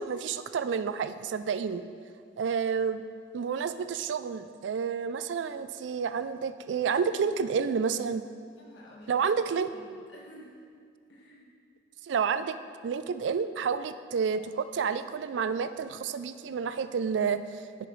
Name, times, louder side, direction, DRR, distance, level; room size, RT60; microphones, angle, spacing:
voice 1, 0.0-1.8 2.4-3.0 3.3-8.2 9.1-9.7 12.1-12.6 12.8-17.9, right 6 dB, 80° right, 12 dB, 0.3 m, -30 dB
voice 2, 8.6-9.1 9.5-10.6 11.1-11.5, equal, 80° left, -3 dB, 1.7 m, -52 dB
10.5 x 6.9 x 3.2 m, 2.1 s
head